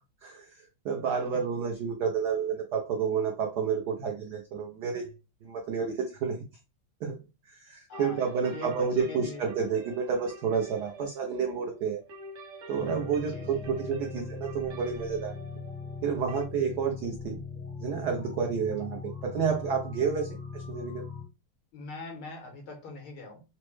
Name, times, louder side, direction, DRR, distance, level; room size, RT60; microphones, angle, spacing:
voice 1, 0.2-5.0 5.4-6.4 7.0-7.2 7.5-12.0 12.7-15.4 16.0-17.4 17.8-21.1, right 6 dB, 80° right, 0.9 m, -30 dB
voice 2, 7.9-9.4 13.3-13.7 21.7-23.4, left 3 dB, 75° left, 1.8 m, -43 dB
sound 1, 7.9-16.4, equal, 65° right, 1.2 m, -46 dB
sound 2, 12.7-21.2, left 5 dB, 5° left, 0.8 m, -40 dB
4.3 x 2.1 x 3.0 m
omnidirectional pair, 2.4 m